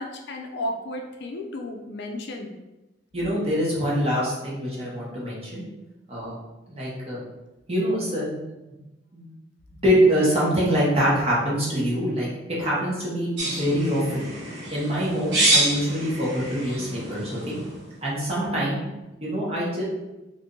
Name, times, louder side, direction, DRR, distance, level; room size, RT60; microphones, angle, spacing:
voice 1, 0.0-2.5, left 1 dB, 60° left, 3 dB, 0.4 m, -33 dB
voice 2, 3.1-5.6 6.1-6.3 6.7-7.2 7.7-8.4 9.1-9.3 9.8-14.3 14.7-17.5 18.0-18.8 19.2-19.8, equal, 30° right, -6 dB, 1.1 m, -24 dB
sound 1, 13.4-17.9, right 1 dB, 60° right, 1.0 m, -27 dB
2.7 x 2.6 x 3.6 m, 1.0 s
head